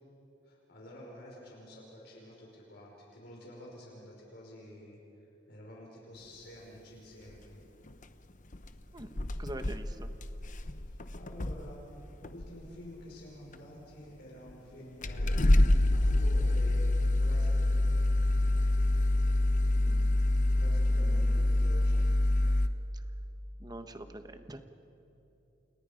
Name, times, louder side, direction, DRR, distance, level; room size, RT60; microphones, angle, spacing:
voice 1, 0.5-5.0 5.5-7.6 11.2-12.0 12.3-15.4 15.9-17.8 20.5-22.1, left 1 dB, 60° left, -2 dB, 5.1 m, -49 dB
sound 1, 7.9-8.0 8.5-8.7 9.0-11.7 12.2-12.6 13.5-13.6 14.5-14.6 15.0-22.7, left 1 dB, 45° left, 1.0 m, -26 dB
voice 2, 8.9-10.1 19.8-20.3 20.9-21.4 22.9-23.0 23.6-24.6, right 1 dB, 20° right, 8 dB, 1.2 m, -45 dB
29.5 x 29.0 x 5.2 m, 2.9 s
head